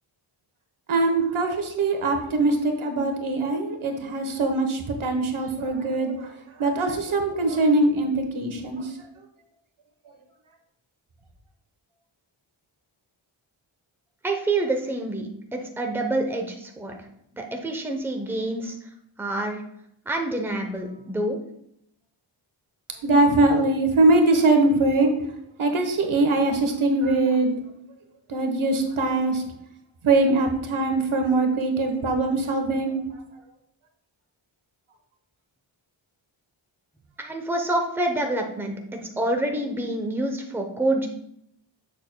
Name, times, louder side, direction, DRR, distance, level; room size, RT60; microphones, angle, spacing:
voice 1, 0.9-6.3 6.6-8.9 23.0-25.1 25.6-27.6 28.3-29.4 30.0-33.0, right 2 dB, 75° right, 5 dB, 1.2 m, -22 dB
voice 2, 14.2-16.9 17.3-18.8 19.2-19.6 20.1-21.4 37.2-41.1, right 2 dB, 5° right, 3 dB, 0.7 m, -27 dB
7.4 x 6.5 x 2.2 m, 0.74 s
wide cardioid pair, 120°, 49 cm